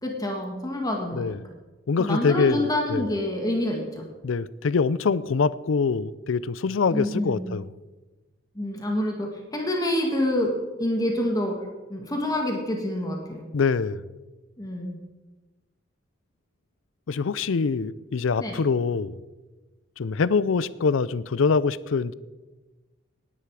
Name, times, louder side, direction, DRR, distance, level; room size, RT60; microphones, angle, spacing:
voice 1, 0.0-1.3 2.0-4.1 6.9-7.5 8.6-10.5 10.8-11.5 11.9-13.5 14.6-15.0 18.4-18.6, left 1 dB, 20° left, 1.9 m, -27 dB
voice 2, 1.9-3.1 4.2-7.7 13.5-14.0 17.1-19.2 20.0-22.1, left 5 dB, 75° left, 0.5 m, -24 dB
18.0 x 10.0 x 4.8 m
head